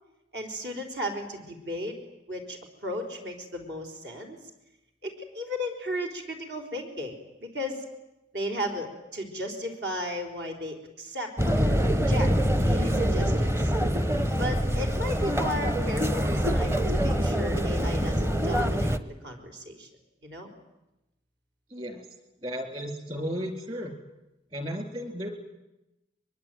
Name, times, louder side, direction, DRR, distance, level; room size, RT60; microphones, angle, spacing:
voice 1, 0.3-2.0 2.3-4.4 5.0-7.8 8.3-12.3 12.6-13.7 14.4-19.0 19.2-19.9 20.2-20.5, equal, 65° right, 4 dB, 4.3 m, -35 dB
sound 1, 11.4-19.0, equal, 15° right, 0.9 m, -25 dB
voice 2, 21.7-22.1 22.4-23.9 24.5-25.3, equal, 30° right, 6 dB, 4.1 m, -34 dB
23.0 x 22.5 x 9.3 m, 0.96 s
head